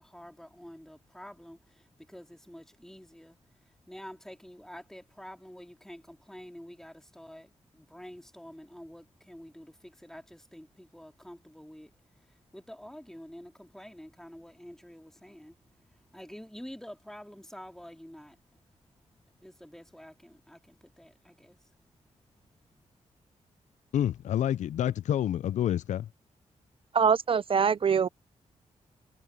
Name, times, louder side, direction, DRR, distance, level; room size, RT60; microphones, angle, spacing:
voice 1, 0.0-3.4 3.9-11.9 12.5-15.6 16.1-18.4 19.4-21.6, equal, 5° left, 2.7 m, -48 dB
voice 2, 23.9-26.1, left 11 dB, 75° left, 0.4 m, -28 dB
voice 3, 26.9-28.1, right 6 dB, 45° right, 0.4 m, -23 dB
cardioid pair, 75°, 12 cm